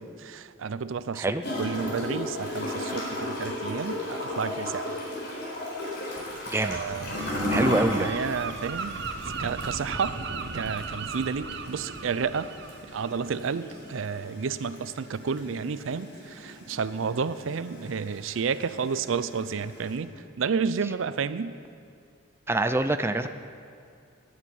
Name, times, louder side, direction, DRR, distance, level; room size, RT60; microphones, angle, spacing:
voice 1, 0.0-4.9 6.6-9.0 9.4-10.1 10.5-12.5 12.9-20.1 20.4-21.5, right 5 dB, 75° right, 14 dB, 0.5 m, -31 dB
Gurgling / Toilet flush, 1.4-20.0, left 1 dB, 55° left, 3.9 m, -36 dB
voice 2, 6.5-6.8 7.5-8.1 22.5-23.3, right 2 dB, 10° right, 9 dB, 0.4 m, -25 dB
Gull seagull, 6.7-14.2, right 4 dB, 60° right, 0.8 m, -37 dB
10.5 x 9.9 x 9.1 m, 2.4 s
head